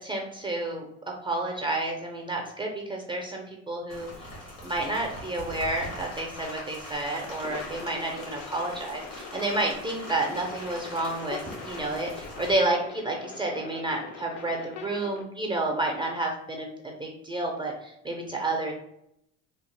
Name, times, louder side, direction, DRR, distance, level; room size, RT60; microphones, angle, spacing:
voice 1, 0.0-4.1 4.6-16.7 17.0-18.7, right 2 dB, 15° right, 0 dB, 0.5 m, -30 dB
Rain, 3.9-12.6, left 1 dB, 90° left, 1.5 m, -42 dB
sound 1, 7.4-15.2, left 6 dB, 50° left, 0.6 m, -43 dB
2.8 x 2.0 x 3.1 m, 0.76 s
hypercardioid pair, 80°, 38 cm